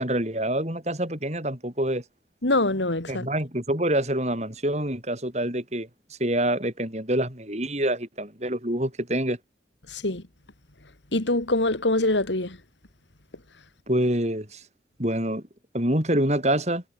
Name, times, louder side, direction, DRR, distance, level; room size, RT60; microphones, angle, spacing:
voice 1, 0.0-2.0 3.1-5.9 6.2-9.4 13.9-14.6 15.0-15.4 15.7-16.8, right 1 dB, 40° right, 6.7 m, -26 dB
voice 2, 2.4-3.3 9.9-10.2 11.1-12.6, left 2 dB, 85° left, 3.0 m, -24 dB
head